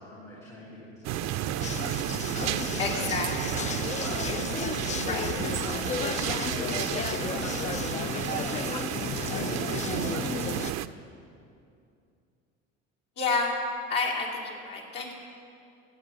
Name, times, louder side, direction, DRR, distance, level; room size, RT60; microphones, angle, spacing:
voice 1, 0.0-3.1 3.6-11.0, equal, 90° left, -8 dB, 3.0 m, -43 dB
sound 1, 1.0-10.9, right 12 dB, 55° right, 0.5 m, -32 dB
sound 2, 1.6-10.7, left 7 dB, 25° left, 0.3 m, -34 dB
voice 2, 2.8-3.5 4.2-4.4 5.1-5.2 13.2-13.5 13.9-15.1, left 4 dB, 70° left, -2 dB, 2.8 m, -30 dB
15.0 x 8.7 x 6.1 m, 2.5 s
hypercardioid pair, 75°, 33 cm